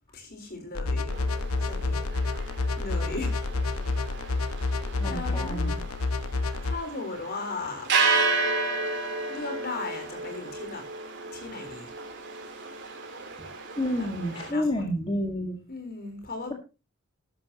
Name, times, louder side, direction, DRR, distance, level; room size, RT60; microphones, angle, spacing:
voice 1, 0.1-1.1 1.6-2.0 2.8-3.3 5.0-5.8 6.6-7.9 9.3-10.8 11.3-11.9 14.0-14.8 15.7-16.5, left 3 dB, 45° left, 5 dB, 4.2 m, -37 dB
sound 1, 0.7-6.7, left 3 dB, 85° left, 0.9 m, -29 dB
sound 2, 1.1-14.5, right 4 dB, 55° right, 3.6 m, -32 dB
voice 2, 5.0-5.8 13.8-15.6, left 1 dB, 25° left, 1 dB, 1.9 m, -29 dB
13.0 x 13.0 x 3.0 m, 0.30 s
head